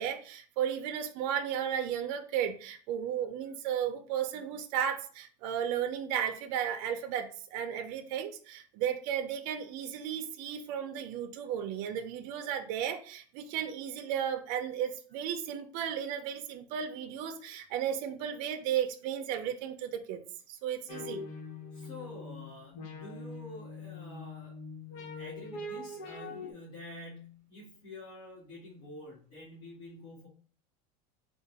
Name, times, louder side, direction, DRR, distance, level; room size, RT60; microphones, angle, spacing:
voice 1, 0.0-20.2 20.5-21.3, right 9 dB, 45° right, 5 dB, 0.6 m, -34 dB
sound 1, 20.9-26.5, left 3 dB, 75° left, 1.4 m, -43 dB
voice 2, 21.7-24.6 24.9-30.3, left 1 dB, 50° left, -7 dB, 2.0 m, -48 dB
3.7 x 2.4 x 4.6 m, 0.43 s
supercardioid pair, 170°, 20 cm